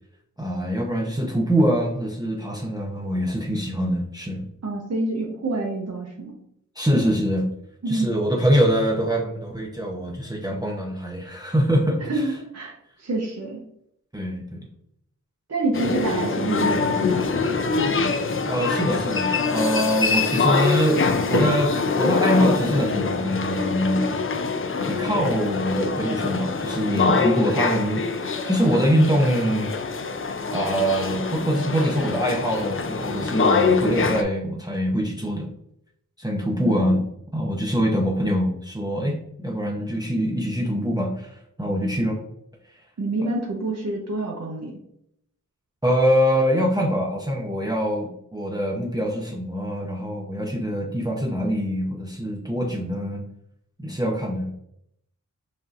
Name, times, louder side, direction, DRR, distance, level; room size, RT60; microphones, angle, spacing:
voice 1, 0.4-4.4 6.8-7.5 7.9-12.2 14.1-14.6 18.4-24.1 24.8-29.8 30.5-35.5 36.2-37.0 37.3-42.2 43.2-43.3 45.8-53.2 53.8-54.6, equal, 10° right, -1 dB, 0.7 m, -24 dB
voice 2, 4.6-6.4 7.8-8.1 12.0-13.6 15.5-17.5 36.6-37.0 43.0-44.8, right 2 dB, 55° right, -1 dB, 0.8 m, -28 dB
sound 1, 15.7-34.2, left 4 dB, 40° left, 0.4 m, -24 dB
5.1 x 2.7 x 2.5 m, 0.73 s
wide cardioid pair, 75°, 32 cm